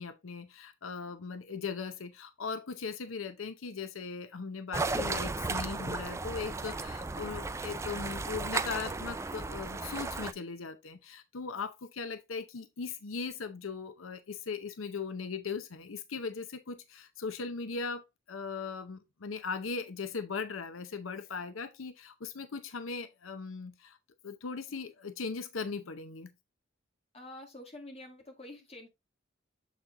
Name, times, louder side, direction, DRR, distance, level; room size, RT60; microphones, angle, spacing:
voice 1, 0.0-24.0 24.2-26.3, left 5 dB, 90° left, 0.7 m, -39 dB
sound 1, 4.7-10.3, right 3 dB, 15° right, 0.3 m, -35 dB
voice 2, 27.1-28.9, left 1 dB, 30° left, 2.1 m, -47 dB
7.5 x 4.2 x 3.6 m
head